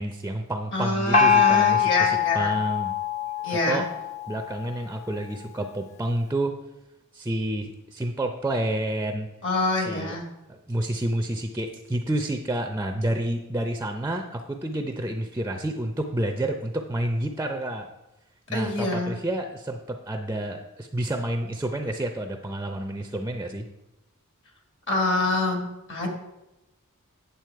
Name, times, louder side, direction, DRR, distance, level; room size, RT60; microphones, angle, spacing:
voice 1, 0.0-2.9 3.5-3.9 4.3-6.6 7.1-9.3 9.9-10.1 10.5-17.9 18.5-23.7, right 1 dB, 10° right, 5 dB, 0.5 m, -29 dB
voice 2, 0.7-2.6 3.4-3.9 9.4-10.3 18.5-19.2 24.9-26.1, left 2 dB, 60° left, 3 dB, 2.0 m, -26 dB
Gong, 1.1-4.6, left 7 dB, 30° left, 0.7 m, -23 dB
9.2 x 7.0 x 4.6 m, 0.96 s
head